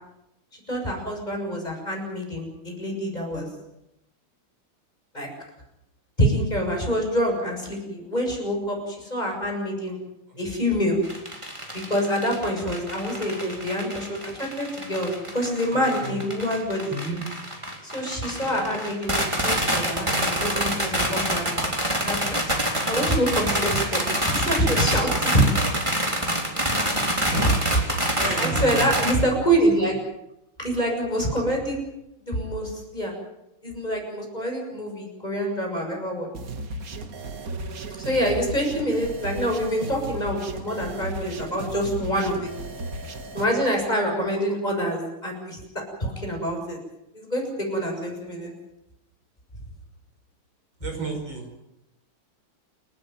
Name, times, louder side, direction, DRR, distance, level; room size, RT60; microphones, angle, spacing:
voice 1, 0.7-3.5 5.1-5.3 6.2-10.0 10.4-11.0 11.7-17.0 17.8-22.4 22.9-25.5 26.8-26.9 28.1-30.0 30.6-31.8 32.2-33.1 33.6-36.3 38.0-42.5 43.3-45.6 46.0-46.8 47.1-48.5, equal, 20° left, 0 dB, 7.0 m, -26 dB
sound 1, 11.0-29.1, right 1 dB, 15° right, 3.8 m, -27 dB
voice 2, 15.7-16.2 16.9-17.2 27.3-27.6 28.2-29.0 50.8-51.5, right 2 dB, 60° right, 3 dB, 6.2 m, -31 dB
sound 2, 36.3-43.4, right 2 dB, 45° right, 1.9 m, -35 dB
29.0 x 13.5 x 9.4 m, 0.88 s
omnidirectional pair, 2.4 m